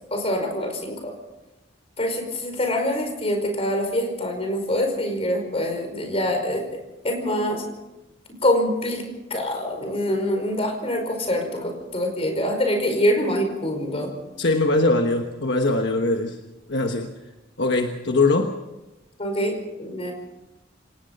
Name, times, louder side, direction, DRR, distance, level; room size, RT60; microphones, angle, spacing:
voice 1, 0.1-1.1 2.0-6.6 7.0-7.6 8.4-9.0 9.3-14.1 19.2-20.1, left 1 dB, 30° left, 4 dB, 5.1 m, -25 dB
voice 2, 14.4-16.4 16.7-17.1 17.6-18.6, left 2 dB, 65° left, 4 dB, 1.3 m, -21 dB
27.0 x 18.0 x 5.5 m, 1.0 s
head